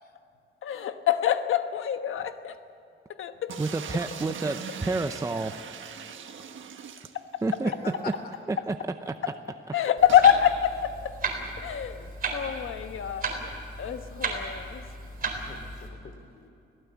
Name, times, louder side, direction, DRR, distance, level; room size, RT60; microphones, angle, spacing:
voice 1, 0.6-2.6 3.1-3.5 5.9-6.1 7.5-8.2 8.6-8.9 9.2-11.1 11.6-13.5 13.8-14.8, left 9 dB, 80° left, 9 dB, 1.2 m, -26 dB
sound 1, 3.5-7.7 8.0-8.1 8.3-8.4 10.1-10.4, right 7 dB, 70° right, 1.5 m, -40 dB
voice 2, 3.6-5.5 7.4-7.7 8.5-8.8 9.1-9.2, right 3 dB, 15° right, 7 dB, 0.6 m, -29 dB
voice 3, 7.6-8.1 13.3-13.6 14.0-14.2 15.3-16.5, left 4 dB, 50° left, 7 dB, 2.9 m, -42 dB
Clock, 10.0-15.9, right 3 dB, 45° right, 4.0 m, -35 dB
24.5 x 17.5 x 8.4 m, 2.6 s
wide cardioid pair, 155°, 21 cm